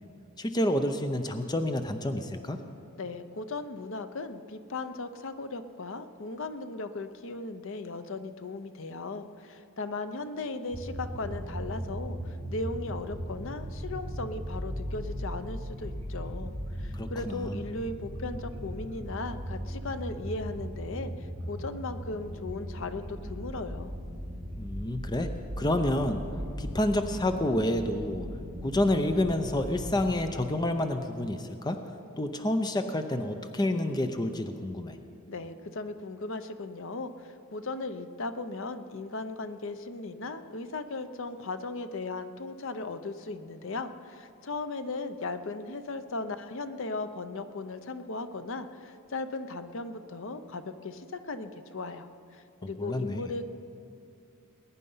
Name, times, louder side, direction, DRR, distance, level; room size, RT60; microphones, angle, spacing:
voice 1, 0.4-2.6 16.9-17.6 24.6-25.3 25.6-26.2 26.6-28.3 28.6-31.8 32.2-35.0 52.8-53.3, left 1 dB, 20° left, 7 dB, 0.5 m, -29 dB
voice 2, 3.0-23.9 35.3-52.1 52.3-53.4, left 3 dB, 60° left, 10 dB, 0.7 m, -37 dB
sound 1, 10.7-30.1, equal, 30° right, 2.9 m, -38 dB
20.5 x 9.7 x 5.6 m, 2.5 s
head